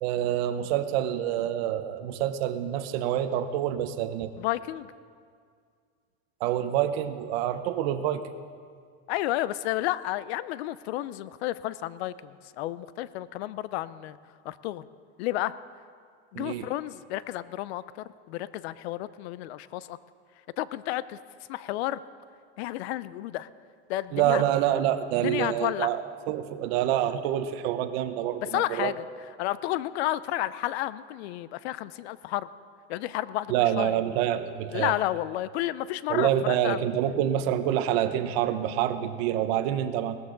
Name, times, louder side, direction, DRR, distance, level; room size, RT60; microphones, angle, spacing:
voice 1, 0.0-4.3 6.4-8.2 16.3-16.7 24.1-28.9 33.5-34.9 36.1-40.2, right 11 dB, 65° right, 9 dB, 1.0 m, -27 dB
voice 2, 4.4-4.9 9.1-14.2 14.4-14.9 15.2-15.6 16.3-17.8 18.3-20.0 20.6-21.2 21.5-22.0 22.6-23.5 23.9-24.4 25.2-25.9 28.5-29.0 29.4-32.5 32.9-34.0 34.7-36.8, left 15 dB, 75° left, 17 dB, 0.6 m, -31 dB
18.0 x 14.0 x 3.9 m, 2.1 s
supercardioid pair, 140°, 32 cm